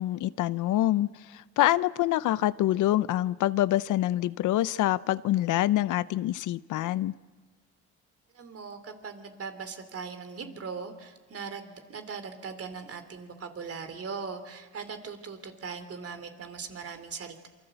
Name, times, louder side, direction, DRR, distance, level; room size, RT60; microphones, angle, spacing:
voice 1, 0.0-7.1, left 14 dB, 80° left, 18 dB, 0.7 m, -26 dB
voice 2, 8.3-17.5, right 5 dB, 50° right, 8 dB, 3.3 m, -40 dB
27.0 x 24.5 x 8.0 m, 1.4 s
cardioid pair, 90°, 30 cm